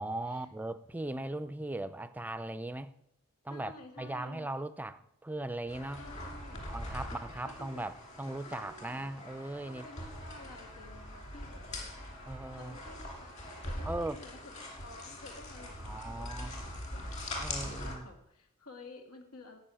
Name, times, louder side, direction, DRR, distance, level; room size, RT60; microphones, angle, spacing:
voice 1, 0.0-2.9 3.4-3.7 4.0-6.1 6.7-7.9 8.2-9.8 12.3-12.8 13.8-14.2 15.8-16.5 17.4-18.1, right 1 dB, 5° right, 0.4 m, -38 dB
voice 2, 3.5-4.5 5.9-7.9 8.6-9.2 9.7-11.9 12.5-19.6, left 2 dB, 90° left, 1.9 m, -52 dB
sound 1, 5.7-17.9, left 1 dB, 30° left, 2.6 m, -42 dB
12.5 x 5.4 x 8.8 m
head